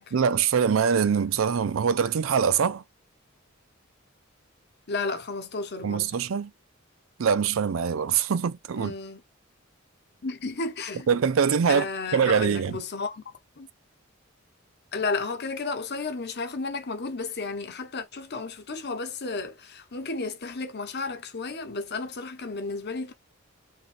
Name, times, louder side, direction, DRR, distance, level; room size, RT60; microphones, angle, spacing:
voice 1, 0.1-2.8 5.8-6.5 7.2-8.9 11.1-12.8, right 7 dB, 75° right, 0.4 m, -23 dB
voice 2, 4.9-6.1 8.8-9.2 10.2-11.1 11.7-13.2 13.6-13.7 14.9-23.1, left 3 dB, 55° left, 1.0 m, -33 dB
5.5 x 2.6 x 2.6 m
head